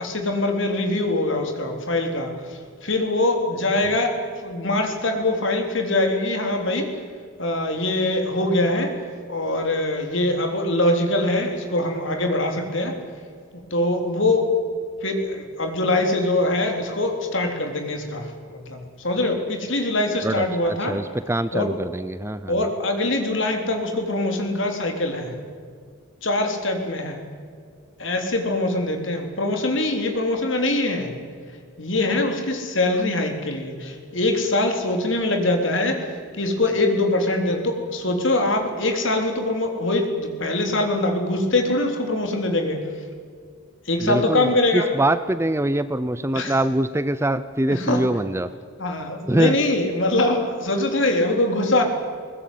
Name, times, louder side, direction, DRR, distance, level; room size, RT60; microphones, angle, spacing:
voice 1, 0.0-2.3 2.8-4.2 4.4-6.9 7.4-8.9 9.3-12.9 13.7-14.5 15.0-20.9 21.5-21.7 22.5-25.3 26.2-27.2 28.0-31.1 31.8-36.0 36.4-42.8 43.9-44.9 46.3-46.5 47.7-48.0 48.8-51.8, left 2 dB, 60° left, 4 dB, 3.7 m, -23 dB
voice 2, 20.9-22.6 44.0-48.5 49.3-49.6, right 1 dB, 10° right, 13 dB, 0.6 m, -23 dB
22.0 x 20.0 x 9.5 m, 2.1 s
head